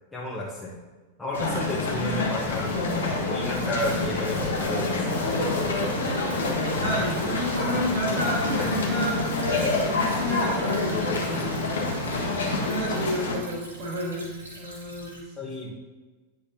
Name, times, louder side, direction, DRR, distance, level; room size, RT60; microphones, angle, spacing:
voice 1, 0.1-0.7 1.2-5.2 15.4-15.8, left 1 dB, 10° left, -7 dB, 1.2 m, -32 dB
sound 1, 1.3-13.3, left 2 dB, 65° left, 1.3 m, -27 dB
Stream / Trickle dribble, 5.3-15.2, right 1 dB, 75° right, 2.2 m, -46 dB
voice 2, 6.8-11.7 12.5-14.3 14.6-15.2, equal, 40° right, -3 dB, 1.5 m, -31 dB
9.8 x 5.0 x 2.9 m, 1.3 s
figure-of-eight pair, 90°, 0 cm